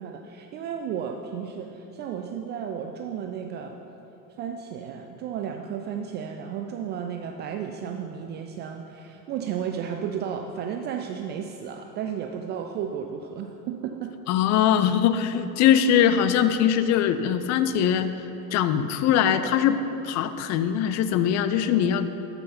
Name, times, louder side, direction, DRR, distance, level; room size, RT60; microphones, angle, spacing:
voice 1, 0.0-3.8 4.4-14.2, right 8 dB, 25° right, 4 dB, 0.3 m, -33 dB
voice 2, 14.3-18.1 18.5-19.8 20.0-22.1, left 9 dB, 35° left, 11 dB, 0.5 m, -22 dB
13.0 x 5.8 x 5.6 m, 3.0 s
figure-of-eight pair, 70°, 49 cm